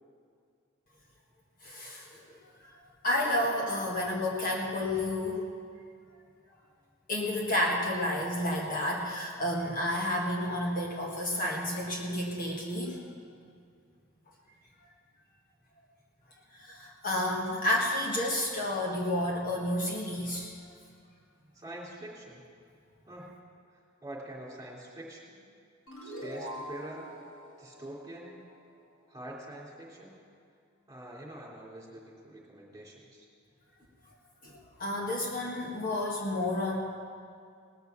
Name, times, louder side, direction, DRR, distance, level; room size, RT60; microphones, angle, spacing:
voice 1, 1.6-2.4 3.0-5.5 7.1-13.0 16.5-20.5 34.4-36.8, left 1 dB, 40° left, -3 dB, 1.7 m, -31 dB
voice 2, 21.5-22.4 23.1-23.3 23.7-25.4 26.0-27.1 27.6-28.3 29.1-30.2 30.9-33.3, right 1 dB, 15° right, -5 dB, 3.1 m, -45 dB
sound 1, 25.9-29.1, right 1 dB, 70° left, 3.9 m, -44 dB
19.0 x 6.8 x 7.2 m, 2.3 s
head